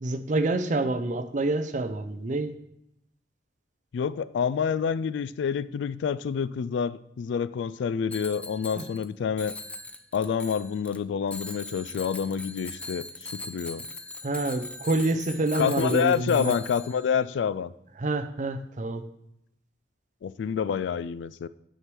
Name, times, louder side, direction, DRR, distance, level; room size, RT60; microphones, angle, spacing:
voice 1, 0.0-2.5 8.8-8.9 14.2-16.6 18.0-19.1, right 2 dB, 45° right, 0.6 m, -27 dB
voice 2, 3.9-9.6 10.1-13.9 15.6-17.7 20.2-21.5, left 7 dB, 75° left, 0.3 m, -28 dB
Bicycle bell, 8.1-9.1 9.4-11.0 11.3-17.2, left 2 dB, 5° left, 0.4 m, -40 dB
6.4 x 4.7 x 6.0 m
head